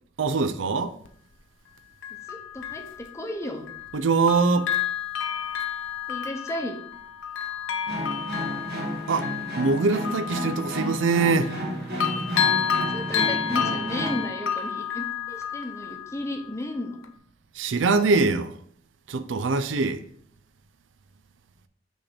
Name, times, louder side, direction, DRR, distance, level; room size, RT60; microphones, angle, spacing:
voice 1, 0.2-1.0 3.9-4.7 9.1-9.3 9.5-11.5 17.5-18.5 19.1-20.0, right 4 dB, 75° right, 0.5 m, -23 dB
Bell, 1.1-1.2 2.0-4.0 4.3-11.7 12.0-16.6 17.0-17.1, left 8 dB, 90° left, 0.7 m, -30 dB
voice 2, 2.3-3.7 6.1-6.8 12.8-17.0, left 1 dB, 15° left, 0.8 m, -34 dB
sound 1, 7.9-14.3, equal, 55° right, 1.6 m, -32 dB
6.1 x 3.4 x 6.0 m
head